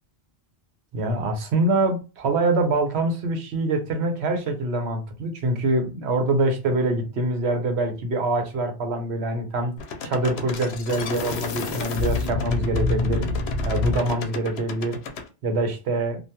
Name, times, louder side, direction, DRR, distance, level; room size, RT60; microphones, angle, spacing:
voice 1, 0.9-9.7 10.0-13.3 13.6-15.0 15.4-16.2, right 2 dB, 85° right, 1.0 m, -24 dB
sound 1, 9.8-15.3, left 4 dB, 80° left, 0.8 m, -28 dB
2.4 x 2.3 x 2.8 m
omnidirectional pair, 1.1 m